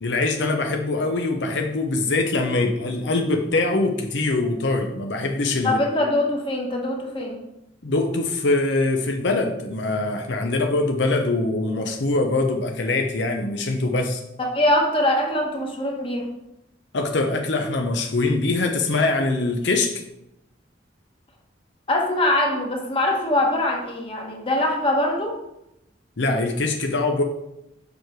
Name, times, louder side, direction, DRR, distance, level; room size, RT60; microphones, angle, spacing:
voice 1, 0.0-5.8 7.8-14.2 16.9-20.0 26.2-27.2, left 2 dB, 75° left, 3 dB, 0.7 m, -23 dB
voice 2, 5.6-7.4 14.4-16.3 21.9-25.4, left 1 dB, 30° left, 0 dB, 1.4 m, -23 dB
7.0 x 4.8 x 4.6 m, 0.87 s
head